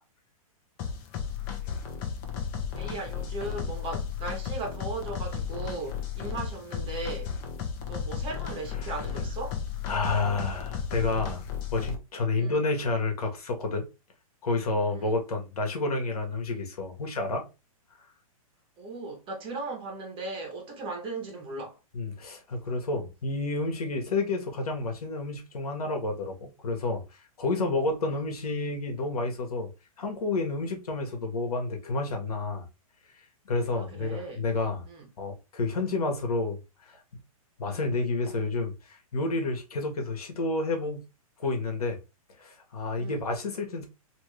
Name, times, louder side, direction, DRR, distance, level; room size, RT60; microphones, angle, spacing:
sound 1, 0.8-12.0, left 7 dB, 35° left, 0.8 m, -34 dB
voice 1, 2.7-7.4 7.9-9.6 12.4-12.6 14.9-15.1 18.8-21.8 33.7-34.4 34.8-35.1 37.6-37.9 42.9-43.2, right 3 dB, 25° right, 1.3 m, -37 dB
voice 2, 9.9-11.4 11.7-13.9 14.4-17.4 21.9-29.7 30.0-32.7 33.4-34.8 35.2-37.0 37.6-41.0 41.4-42.0 42.4-43.9, left 3 dB, 85° left, 1.2 m, -30 dB
2.9 x 2.7 x 3.2 m
hypercardioid pair, 135°, 19 cm